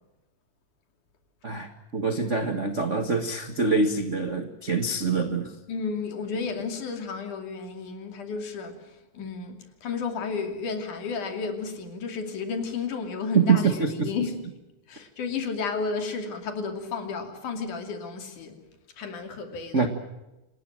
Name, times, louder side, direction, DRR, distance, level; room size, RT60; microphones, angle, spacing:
voice 1, 1.4-5.5 13.3-14.1 19.7-19.9, right 4 dB, 45° right, 0.9 m, -25 dB
voice 2, 5.7-8.8 9.1-14.4 14.9-18.6 19.0-19.9, left 5 dB, 65° left, 4.1 m, -32 dB
27.5 x 19.5 x 7.5 m
omnidirectional pair, 4.0 m